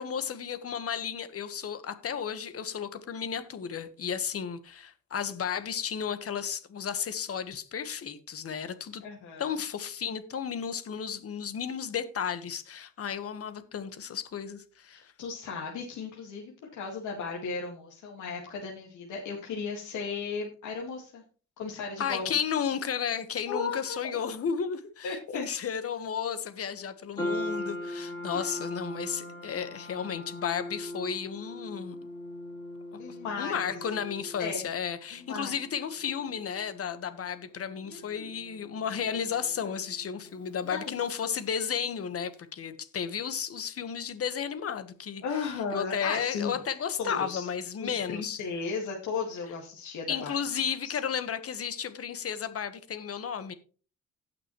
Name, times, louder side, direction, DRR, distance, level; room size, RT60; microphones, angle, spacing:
voice 1, 0.0-9.0 9.4-15.1 22.0-32.0 32.9-33.0 33.4-48.4 50.1-53.5, left 7 dB, 50° left, 1.4 m, -33 dB
voice 2, 9.0-9.5 14.9-21.2 21.6-22.3 23.5-24.0 25.0-25.5 28.3-28.5 33.0-33.8 34.4-34.7 35.1-35.5 37.8-38.3 40.7-40.9 45.2-46.6 47.0-47.5 47.8-50.3 50.8-51.0, left 5 dB, 80° left, 2.0 m, -35 dB
sound 1, 27.2-41.6, left 1 dB, 15° left, 3.4 m, -41 dB
17.5 x 6.0 x 3.1 m
cardioid pair, 90°, 30 cm